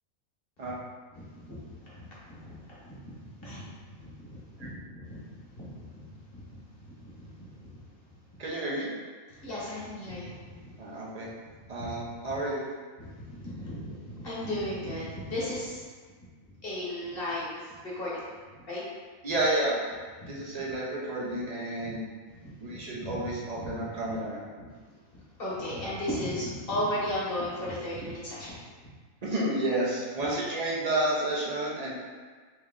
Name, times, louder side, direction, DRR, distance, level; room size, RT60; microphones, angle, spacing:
voice 1, 1.1-3.7 4.0-4.3 4.6-6.0 6.3-7.8 9.3-10.5 11.8-11.9 13.0-15.8 16.6-18.2 18.7-18.8 20.2-20.3 21.8-21.9 22.4-23.7 24.1-24.2 24.6-24.7 25.4-28.9, left 1 dB, 45° left, -7 dB, 1.1 m, -36 dB
voice 2, 8.4-8.9 10.8-11.3 11.7-12.7 19.2-19.8 20.3-22.0 22.6-24.4 29.2-31.9, right 1 dB, 45° right, -5 dB, 0.5 m, -30 dB
3.2 x 3.0 x 3.6 m, 1.5 s
omnidirectional pair, 1.5 m